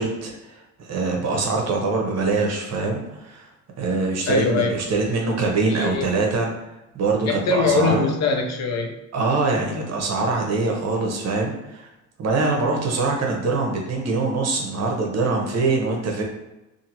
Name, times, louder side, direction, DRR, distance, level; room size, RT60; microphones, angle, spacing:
voice 1, 0.0-3.5 3.8-6.5 6.9-8.1 9.1-11.9 12.2-16.2, right 3 dB, 60° right, 0 dB, 0.8 m, -23 dB
voice 2, 4.3-4.7 5.7-6.1 7.3-8.9, left 3 dB, 60° left, 3 dB, 0.6 m, -22 dB
2.6 x 2.5 x 2.9 m, 0.99 s
cardioid pair, 90°, 30 cm